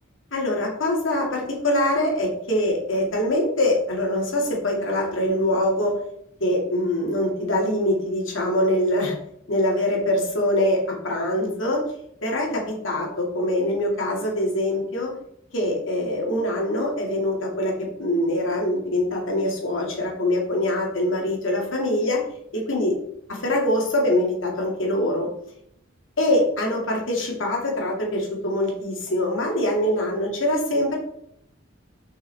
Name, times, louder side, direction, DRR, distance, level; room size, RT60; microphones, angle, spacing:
voice 1, 0.3-5.9 6.4-9.2 9.5-11.8 12.2-15.1 15.5-22.2 22.5-23.0 23.3-25.3 26.2-31.0, left 1 dB, 85° left, -1 dB, 2.1 m, -23 dB
7.2 x 5.3 x 3.4 m, 0.71 s
head